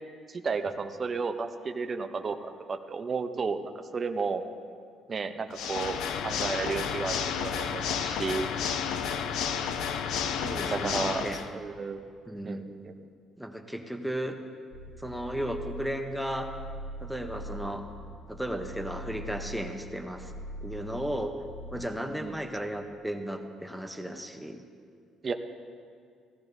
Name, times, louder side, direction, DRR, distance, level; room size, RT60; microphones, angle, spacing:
voice 1, 0.3-4.4 5.1-8.5 10.6-11.3 11.5-12.0 12.4-12.9 22.2-22.4 25.2-25.3, right 4 dB, 30° right, 7 dB, 0.6 m, -33 dB
Water / Mechanisms, 5.5-11.5, left 7 dB, 75° left, 0.6 m, -31 dB
voice 2, 10.2-11.4 12.3-12.6 13.4-14.3 15.0-16.5 17.0-17.8 18.3-20.3 20.6-21.4 21.7-24.6, equal, ahead, 4 dB, 0.8 m, -35 dB
sound 1, 14.7-21.9, equal, 20° left, 1.1 m, -42 dB
16.5 x 14.0 x 2.7 m, 2.2 s
cardioid pair, 130°, 0 cm